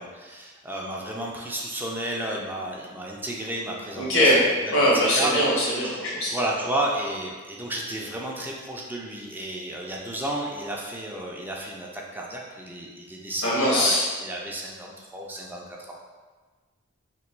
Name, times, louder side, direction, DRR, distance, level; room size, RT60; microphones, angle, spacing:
voice 1, 0.0-4.3 4.6-5.4 5.9-6.0 6.3-15.9, right 1 dB, 10° right, -2 dB, 0.3 m, -32 dB
voice 2, 4.0-4.4 4.7-6.3 13.4-14.0, equal, 90° left, -5 dB, 1.2 m, -21 dB
2.9 x 2.5 x 4.4 m, 1.4 s
head